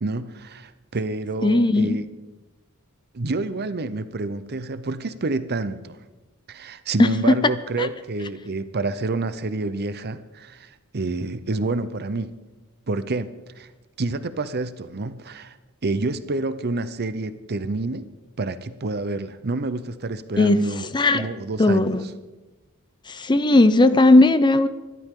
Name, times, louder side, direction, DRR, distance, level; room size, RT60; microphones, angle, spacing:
voice 1, 0.0-2.0 3.1-6.0 6.5-12.3 12.9-13.7 14.0-15.6 15.8-18.1 18.4-20.9 21.1-21.9, right 3 dB, 45° right, 0.7 m, -28 dB
voice 2, 1.4-2.0 7.0-7.5 7.8-7.9 20.4-20.6 20.9-21.3 21.6-22.0 23.1-24.7, left 2 dB, 20° left, 0.6 m, -17 dB
24.5 x 12.0 x 3.8 m
head